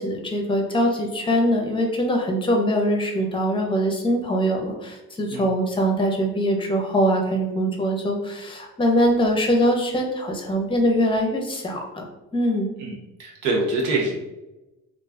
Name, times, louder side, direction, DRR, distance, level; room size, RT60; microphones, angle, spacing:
voice 1, 0.0-12.1 12.3-12.7, equal, 15° left, 2 dB, 0.7 m, -22 dB
voice 2, 12.8-14.1, right 2 dB, 85° right, -2 dB, 0.7 m, -25 dB
2.4 x 2.3 x 3.3 m, 1.0 s
cardioid pair, 90°, 30 cm